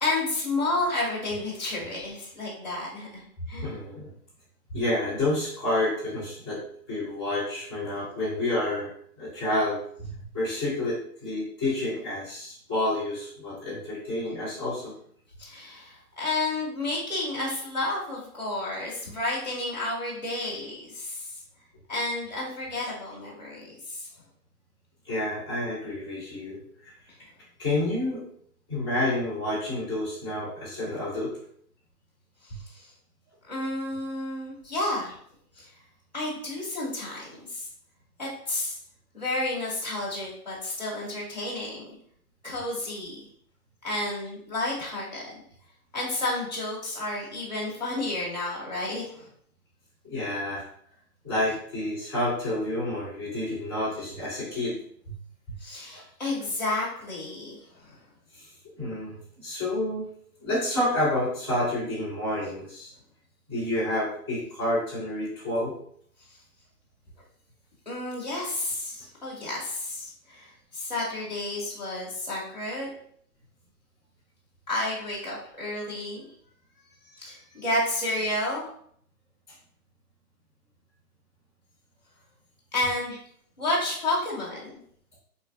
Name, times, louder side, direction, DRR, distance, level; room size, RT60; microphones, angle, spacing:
voice 1, 0.0-3.8 15.4-21.4 21.9-24.1 32.7-32.9 33.5-35.1 35.6-35.7 36.1-37.7 38.2-38.8 39.1-41.8 42.4-43.2 43.8-45.3 45.9-49.3 55.6-58.0 67.9-72.9 74.7-76.3 77.0-78.6 82.7-83.2 83.6-84.7, left 2 dB, 30° left, -6 dB, 0.5 m, -31 dB
voice 2, 3.6-4.1 4.7-8.9 9.2-14.9 25.0-26.9 27.6-28.3 28.7-31.3 50.0-50.6 51.2-54.8 55.1-55.2 55.9-56.0 58.3-58.5 58.8-60.0 60.4-62.9 63.5-65.8, left 1 dB, 15° right, -14 dB, 0.8 m, -29 dB
2.9 x 2.4 x 2.2 m, 0.64 s
hypercardioid pair, 180°, 47 cm